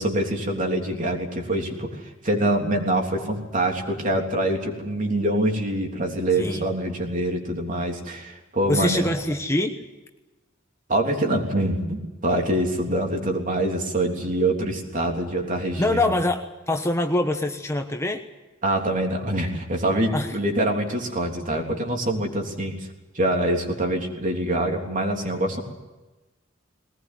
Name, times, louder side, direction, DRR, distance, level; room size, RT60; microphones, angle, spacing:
voice 1, 0.0-9.1 10.9-16.2 18.6-22.8 23.1-25.6, right 1 dB, 40° right, 2 dB, 3.5 m, -25 dB
voice 2, 8.7-9.8 15.8-18.2 20.1-20.3, left 1 dB, 15° left, 5 dB, 1.2 m, -24 dB
21.0 x 19.0 x 9.4 m, 1.1 s
head